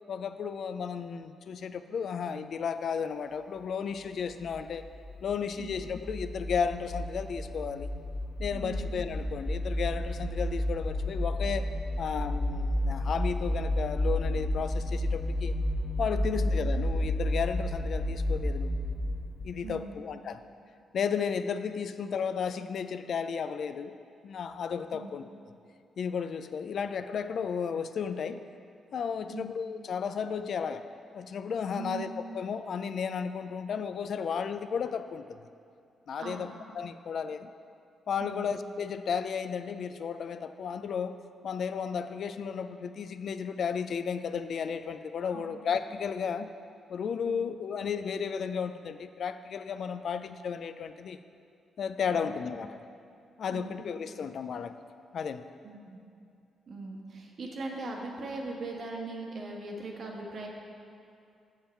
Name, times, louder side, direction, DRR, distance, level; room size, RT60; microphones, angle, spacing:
voice 1, 0.1-4.8 5.2-7.9 8.4-11.7 12.0-15.5 16.0-18.8 19.4-20.4 20.9-24.0 24.2-25.2 26.0-28.4 28.9-30.8 31.1-35.4 36.1-36.5 36.7-37.5 38.1-41.1 41.4-46.5 46.9-51.2 51.8-52.8 53.4-54.8 55.1-55.4, left 6 dB, 60° left, 11 dB, 0.3 m, -33 dB
sound 1, 4.4-19.7, left 1 dB, 20° left, 0.9 m, -31 dB
voice 2, 8.5-8.9 16.2-16.5 19.6-19.9 24.9-25.1 29.3-29.5 31.7-32.0 36.2-36.5 38.2-38.5 45.3-45.6 47.3-47.4 52.1-52.3 53.5-53.8 55.6-56.0 56.7-60.5, right 3 dB, 55° right, 0 dB, 1.2 m, -40 dB
7.3 x 7.0 x 4.4 m, 2.5 s
cardioid pair, 100°, 0 cm